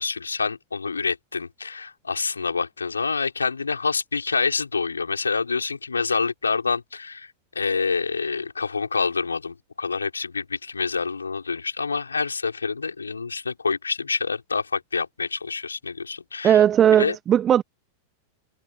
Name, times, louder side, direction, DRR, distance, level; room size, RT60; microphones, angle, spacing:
voice 1, 0.0-16.6 17.0-17.2, left 4 dB, 75° left, 5.5 m, -27 dB
voice 2, 16.4-17.6, right 10 dB, 25° right, 1.4 m, -17 dB
figure-of-eight pair, 90°, 0 cm